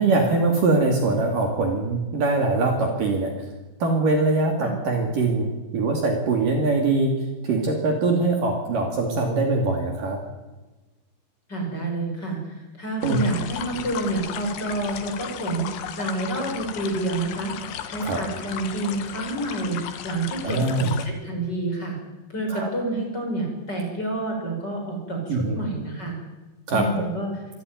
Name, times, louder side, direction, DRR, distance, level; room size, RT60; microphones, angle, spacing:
voice 1, 0.0-3.3 3.8-7.1 7.4-10.2 13.0-13.2 18.0-18.2 20.4-20.9 22.5-22.7 25.3-25.6 26.7-26.8, right 3 dB, 55° right, 2 dB, 3.8 m, -22 dB
voice 2, 11.5-15.7 16.0-17.5 17.9-22.0 22.3-26.2 26.7-27.3, right 2 dB, 20° left, 1 dB, 5.6 m, -28 dB
sound 1, 13.0-21.1, left 9 dB, 70° left, 3.5 m, -35 dB
25.0 x 14.0 x 9.5 m, 1.1 s
omnidirectional pair, 5.2 m